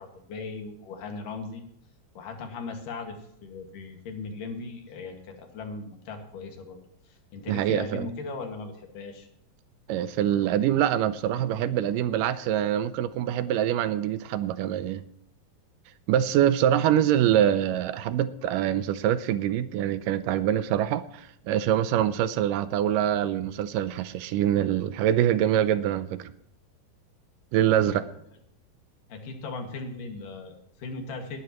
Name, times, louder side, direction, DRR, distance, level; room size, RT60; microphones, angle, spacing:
voice 1, 0.0-1.6 2.1-6.8 7.1-9.3 29.1-31.4, left 3 dB, 70° left, 3.4 m, -38 dB
voice 2, 7.5-8.1 9.9-15.0 16.1-26.3 27.5-28.0, right 11 dB, 80° right, 2.2 m, -24 dB
19.0 x 11.5 x 3.0 m
omnidirectional pair, 4.0 m